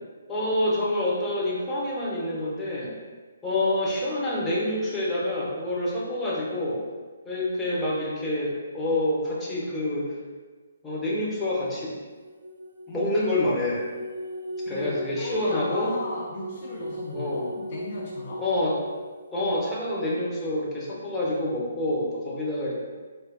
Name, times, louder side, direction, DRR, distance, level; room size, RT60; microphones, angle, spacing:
voice 1, 0.3-2.9 3.4-6.8 7.3-10.1 10.8-12.0 12.9-13.8 14.7-15.9 17.1-17.5 18.4-18.8 19.3-22.8, left 1 dB, 10° left, -7 dB, 0.8 m, -27 dB
sound 1, 12.0-19.8, equal, 90° right, 0.6 m, -38 dB
voice 2, 14.7-18.4, left 2 dB, 40° left, -3 dB, 0.4 m, -36 dB
4.1 x 3.3 x 2.2 m, 1.4 s
figure-of-eight pair, 135°, 0 cm